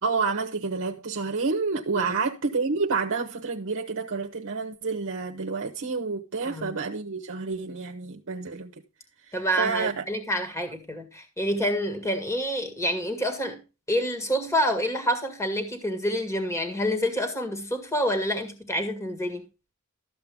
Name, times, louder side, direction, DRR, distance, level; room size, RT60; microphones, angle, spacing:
voice 1, 0.0-8.7 9.2-10.0, right 4 dB, 60° right, 0.9 m, -29 dB
voice 2, 9.3-13.6 13.9-19.4, equal, 15° left, 1.9 m, -27 dB
13.5 x 7.6 x 3.5 m
head